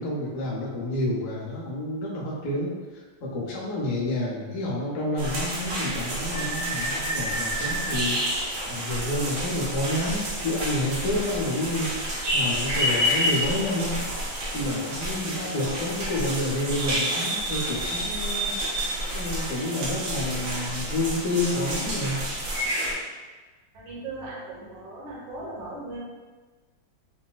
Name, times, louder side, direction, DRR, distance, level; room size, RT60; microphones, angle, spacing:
voice 1, 0.0-8.2 8.7-11.9 12.3-14.0 14.5-18.5 19.1-22.2, left 1 dB, 85° left, -4 dB, 0.6 m, -29 dB
sound 1, 5.2-22.9, equal, 85° right, 1.6 m, -29 dB
voice 2, 23.7-26.0, right 2 dB, 70° right, -6 dB, 1.5 m, -38 dB
3.8 x 2.2 x 2.2 m, 1.3 s
omnidirectional pair, 2.1 m